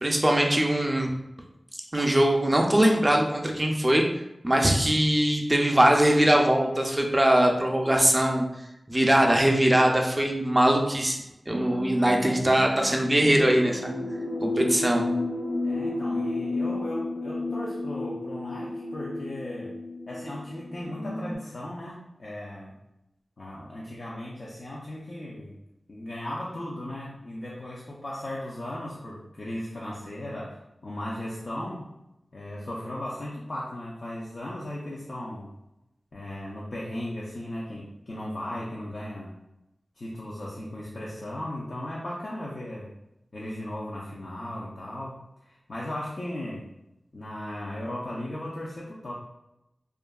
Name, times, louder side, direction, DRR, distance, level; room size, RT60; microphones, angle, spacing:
voice 1, 0.0-1.1 1.9-4.1 4.4-8.5 8.9-14.0 14.4-15.1, right 1 dB, 25° right, 1 dB, 0.4 m, -22 dB
sound 1, 11.5-21.3, left 2 dB, 85° left, 1.2 m, -32 dB
voice 2, 15.6-19.7 20.1-22.7 23.4-25.6 25.9-31.9 32.3-35.6 36.1-39.4 40.0-42.9 43.3-46.7 47.1-49.1, left 1 dB, 65° left, -5 dB, 0.4 m, -37 dB
2.7 x 2.4 x 2.2 m, 0.90 s
wide cardioid pair, 55°, 0 cm